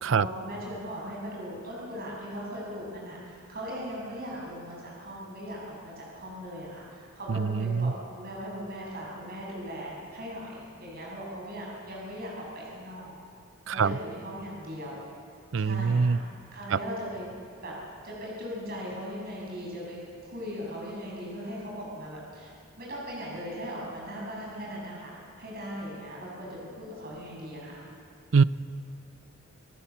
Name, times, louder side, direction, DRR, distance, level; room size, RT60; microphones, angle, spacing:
voice 1, 0.1-13.1 13.7-15.0 15.6-16.2 16.5-17.3 17.6-17.8 18.0-27.8, equal, 50° right, -4 dB, 7.1 m, -39 dB
voice 2, 7.3-7.9 13.7-14.0 15.5-16.2 16.7-16.8 28.3-28.4, right 5 dB, 65° right, 16 dB, 0.5 m, -24 dB
27.0 x 18.5 x 7.1 m, 2.5 s
head